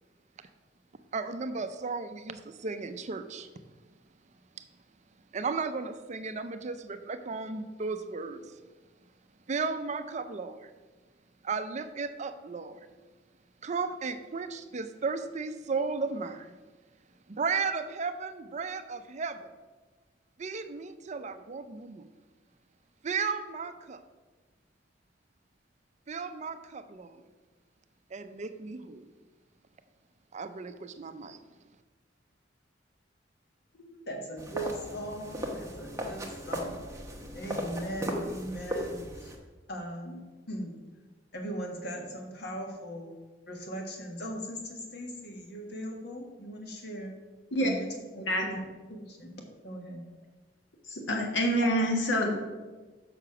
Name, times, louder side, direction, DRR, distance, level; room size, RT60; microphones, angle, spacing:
voice 1, 1.1-3.5 5.3-8.4 9.5-10.7 11.4-12.8 13.6-16.6 17.3-19.5 20.4-22.1 23.0-24.0 26.1-27.2 28.1-29.1 30.3-31.4, right 4 dB, 40° right, 10 dB, 0.5 m, -35 dB
voice 2, 33.8-36.8 37.3-39.3 39.7-40.7 41.3-43.1 43.5-47.1 47.6-47.9 48.2-49.3 49.6-50.1, equal, 60° left, 2 dB, 1.6 m, -39 dB
sound 1, 34.4-39.4, equal, 15° right, 1.1 m, -37 dB
voice 3, 50.9-52.3, equal, 85° left, 1 dB, 1.7 m, -26 dB
6.7 x 5.7 x 5.9 m, 1.3 s
head